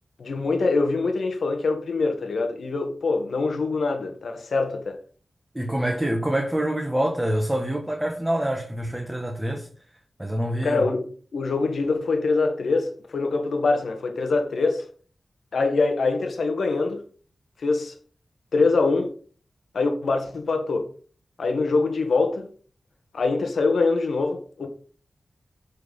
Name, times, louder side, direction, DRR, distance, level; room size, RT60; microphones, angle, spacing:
voice 1, 0.2-5.0 10.6-14.8 15.5-17.0 17.6-17.9 18.5-19.1 19.7-20.9 21.4-22.5 23.1-24.7, left 3 dB, 85° left, 1.8 m, -24 dB
voice 2, 5.5-9.7 10.2-10.8, right 1 dB, 10° right, 1.5 m, -26 dB
10.5 x 4.6 x 5.8 m
wide cardioid pair, 90°, 0 cm